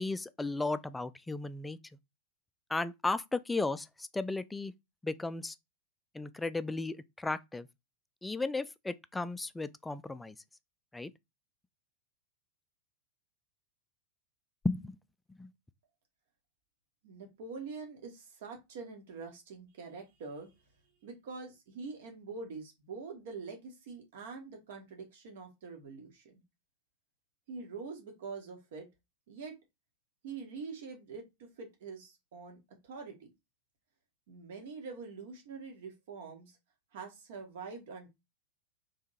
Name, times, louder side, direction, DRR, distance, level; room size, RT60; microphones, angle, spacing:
voice 1, 0.0-1.8 2.7-4.7 5.0-5.6 6.1-7.7 8.2-10.4 10.9-11.1 14.6-15.0 15.4-15.5, left 3 dB, 10° left, 0.3 m, -35 dB
voice 2, 17.0-20.5 21.0-26.3 27.5-28.9 29.3-29.5 30.2-32.6 32.8-33.1 34.3-36.5 36.9-38.1, right 4 dB, 55° right, 1.6 m, -45 dB
3.6 x 3.5 x 4.2 m
figure-of-eight pair, 90°, 0 cm